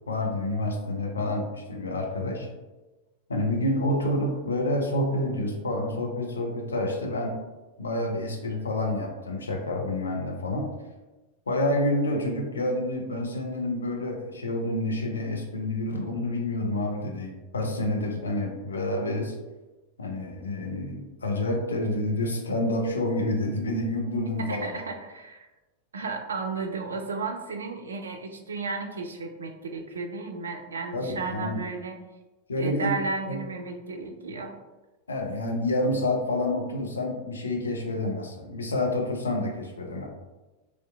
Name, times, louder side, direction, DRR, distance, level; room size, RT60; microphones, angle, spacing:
voice 1, 0.1-2.5 3.3-7.4 7.8-10.7 11.5-19.3 20.0-24.7 30.9-31.6 32.5-33.0 33.3-33.4 35.1-40.1, left 1 dB, 75° left, 2 dB, 0.4 m, -28 dB
voice 2, 24.5-25.5 25.9-32.0 32.6-34.5, right 4 dB, 70° right, 4 dB, 0.3 m, -33 dB
2.7 x 2.2 x 2.2 m, 1.1 s
figure-of-eight pair, 90°, 0 cm